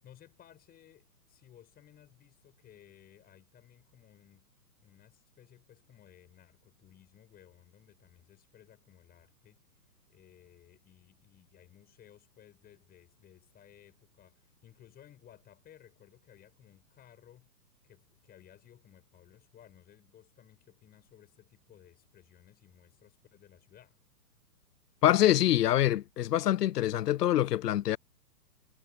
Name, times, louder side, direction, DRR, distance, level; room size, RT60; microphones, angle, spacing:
voice 1, 0.0-4.5 4.8-17.5 17.8-24.0, left 10 dB, 20° left, 6.0 m, -59 dB
voice 2, 25.0-28.0, left 13 dB, 70° left, 0.6 m, -25 dB
hypercardioid pair, 130°, 49 cm